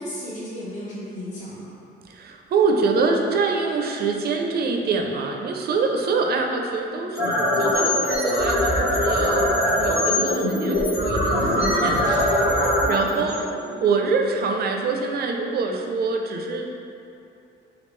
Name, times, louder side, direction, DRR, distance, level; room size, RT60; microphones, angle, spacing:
voice 1, 0.0-1.7 11.4-12.3 13.0-13.4, left 1 dB, 40° left, -9 dB, 0.6 m, -35 dB
voice 2, 2.0-12.3 12.6-13.4 13.8-16.7, right 4 dB, 55° right, 2 dB, 0.4 m, -25 dB
sound 1, 7.0-14.1, left 1 dB, 75° left, 1.1 m, -22 dB
3.5 x 2.3 x 3.1 m, 2.7 s
cardioid pair, 90°, 20 cm